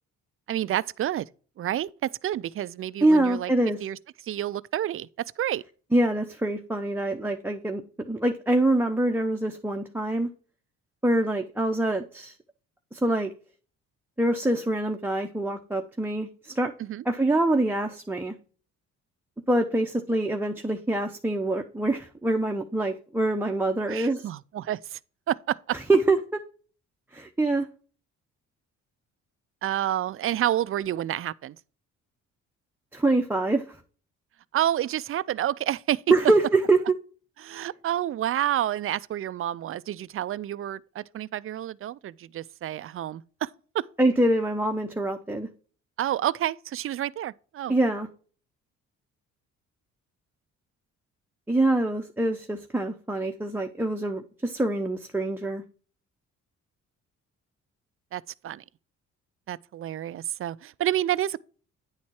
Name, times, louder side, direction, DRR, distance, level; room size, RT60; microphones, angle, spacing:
voice 1, 0.5-1.3 1.6-3.5 3.8-4.0 4.2-5.1 5.4-5.6 16.8-17.0 23.9-25.0 25.3-25.8 29.6-31.6 34.5-36.0 37.4-43.9 46.0-47.7 58.1-58.6 59.5-61.4, right 12 dB, 45° right, 0.4 m, -29 dB
voice 2, 3.0-3.8 5.9-10.3 11.0-12.3 12.9-13.3 14.2-16.7 17.0-18.3 19.5-24.3 25.7-26.4 27.1-27.7 32.9-33.8 36.1-36.8 44.0-45.5 47.7-48.1 51.5-55.6, right 2 dB, 5° right, 0.8 m, -25 dB
9.6 x 4.2 x 4.6 m
cardioid pair, 90°, 30 cm